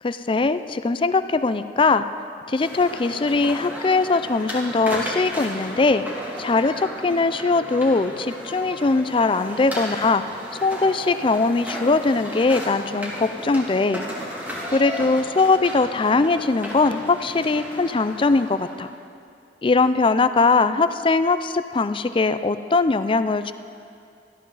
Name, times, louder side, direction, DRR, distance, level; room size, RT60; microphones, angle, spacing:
voice 1, 0.0-2.0 2.5-10.2 10.6-14.0 14.7-18.9 19.6-23.5, left 3 dB, 30° left, 12 dB, 0.4 m, -21 dB
sound 1, 2.5-19.0, equal, 10° right, 2.6 m, -34 dB
18.5 x 14.0 x 4.0 m, 2.5 s
head